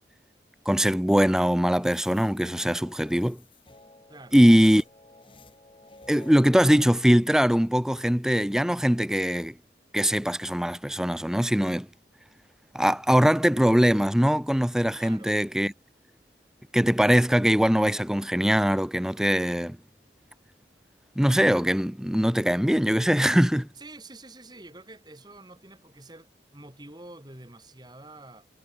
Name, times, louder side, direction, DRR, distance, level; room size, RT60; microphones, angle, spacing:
voice 1, 0.7-3.4 4.3-4.8 6.1-9.5 9.9-11.9 12.7-15.7 16.7-19.8 21.2-23.7, equal, 5° right, 0.5 m, -22 dB
sound 1, 1.8-6.8, left 2 dB, 30° left, 2.0 m, -51 dB
voice 2, 4.1-4.8 15.0-15.3 23.8-28.5, right 2 dB, 25° right, 3.0 m, -47 dB
head